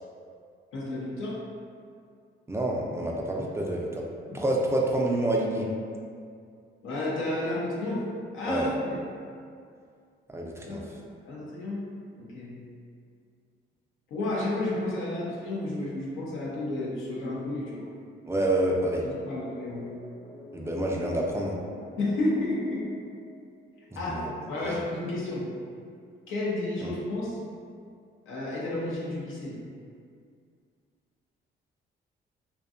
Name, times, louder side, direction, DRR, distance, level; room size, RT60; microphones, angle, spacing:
voice 1, 0.7-1.4 4.3-4.4 6.8-8.1 8.3-9.0 10.7-10.8 11.2-11.9 12.2-12.6 14.1-17.9 19.0-19.9 22.0-22.9 24.0-25.5 26.3-27.4 28.3-29.6, left 2 dB, 85° left, -6 dB, 0.6 m, -31 dB
voice 2, 2.5-4.0 4.3-5.7 8.5-8.7 10.3-10.8 18.3-19.0 20.5-21.6 24.1-24.3 24.6-24.8 26.8-26.9, right 1 dB, 15° right, -1 dB, 0.3 m, -28 dB
sound 1, 18.7-23.8, left 1 dB, 60° left, 0.9 m, -47 dB
2.6 x 2.2 x 2.4 m, 2.2 s
cardioid pair, 90°, 20 cm